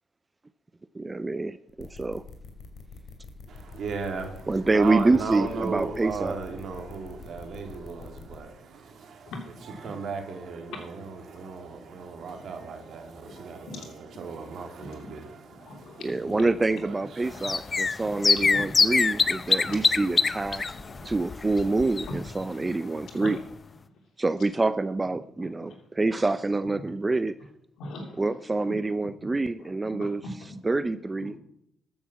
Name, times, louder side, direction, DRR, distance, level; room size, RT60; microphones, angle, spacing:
voice 1, 0.9-2.2 4.5-6.4 16.0-20.7 21.0-23.4 24.2-27.3 28.2-30.2 30.6-31.4, right 3 dB, 20° right, 14 dB, 0.4 m, -26 dB
sound 1, 1.7-8.4, left 4 dB, 50° left, 2.7 m, -45 dB
voice 2, 3.5-9.3 9.6-17.6, right 5 dB, 65° right, 4 dB, 2.6 m, -36 dB
voice 3, 14.5-15.1 15.5-16.4 17.4-17.5 18.0-18.2 18.5-18.7 19.1-19.3 19.6-19.8 20.7-21.1 22.1-22.2 22.5-22.6 23.2-23.3 25.4-25.8 26.6-26.9 27.8-28.2 29.2-29.3 29.6-30.6 31.2-31.4, left 2 dB, 75° left, 3 dB, 3.0 m, -41 dB
sound 2, 17.3-22.4 22.7-22.8 23.1-23.2, left 4 dB, 35° left, 0.5 m, -25 dB
13.5 x 7.1 x 7.4 m, 0.78 s
cardioid pair, 90°, 0 cm